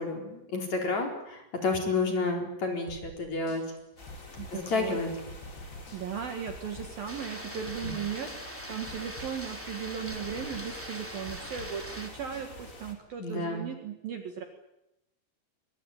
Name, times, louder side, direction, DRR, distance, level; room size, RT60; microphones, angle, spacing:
voice 1, 0.0-3.6 4.5-5.1 7.8-7.9 13.2-13.7, left 3 dB, 35° left, 3 dB, 4.9 m, -30 dB
sound 1, 2.9-12.5, left 1 dB, 55° left, 7.3 m, -47 dB
sound 2, 4.0-12.9, left 2 dB, 20° left, 3.3 m, -47 dB
voice 2, 4.4-5.0 5.9-14.4, right 8 dB, 55° right, 6 dB, 3.0 m, -37 dB
sound 3, 7.1-12.1, equal, 5° right, 2.1 m, -42 dB
23.5 x 22.5 x 9.0 m, 0.86 s
omnidirectional pair, 5.8 m